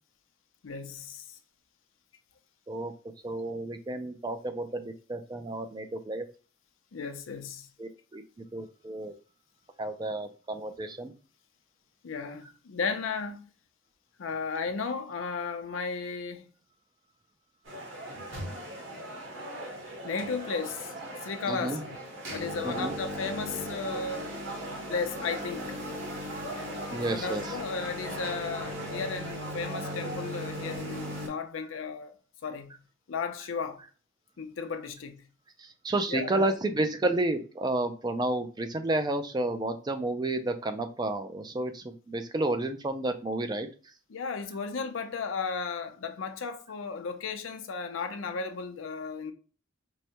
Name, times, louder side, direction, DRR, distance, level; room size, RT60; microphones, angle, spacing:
voice 1, 0.6-1.3 6.9-7.7 12.0-13.5 14.2-16.5 20.0-20.9 21.2-22.0 22.3-24.3 24.9-25.8 27.1-32.1 32.4-32.7 33.1-33.8 34.4-35.2 36.1-36.3 44.1-49.3, left 5 dB, 85° left, 0.5 m, -34 dB
voice 2, 3.2-6.3 7.8-9.1 9.8-11.1 21.5-21.8 22.6-22.9 24.5-24.9 26.9-27.6 31.6-31.7 35.6-43.7, right 2 dB, 20° right, 0.3 m, -31 dB
sound 1, 17.7-31.3, equal, 80° right, 1.3 m, -38 dB
4.6 x 2.1 x 2.8 m
head